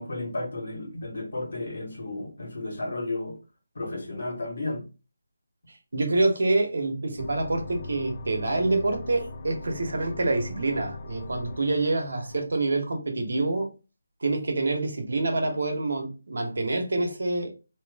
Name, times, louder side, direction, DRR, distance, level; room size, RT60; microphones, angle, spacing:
voice 1, 0.0-3.4 3.7-4.9, left 2 dB, 60° left, 1.5 m, -33 dB
voice 2, 5.9-13.7 14.2-17.5, right 2 dB, 60° right, 1.2 m, -26 dB
sound 1, 7.2-12.5, left 2 dB, 25° left, 0.4 m, -40 dB
3.0 x 3.0 x 3.5 m
figure-of-eight pair, 175°, 0 cm